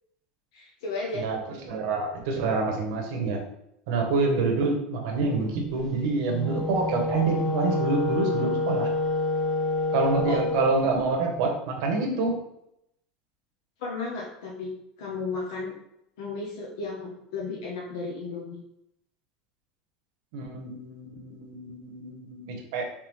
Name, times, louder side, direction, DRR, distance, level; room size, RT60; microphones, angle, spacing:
voice 1, 0.5-1.2 10.3-10.4 13.8-14.7 15.0-15.7 16.2-18.6, left 3 dB, 80° left, -3 dB, 0.8 m, -34 dB
voice 2, 1.1-3.4 3.9-8.9 9.9-12.4 20.3-22.9, right 3 dB, 65° right, 2 dB, 0.9 m, -27 dB
Wind instrument woodwind instrument, 6.2-10.8, left 2 dB, 10° left, 0.7 m, -27 dB
3.4 x 3.3 x 3.1 m, 0.80 s
supercardioid pair, 165°, 2 cm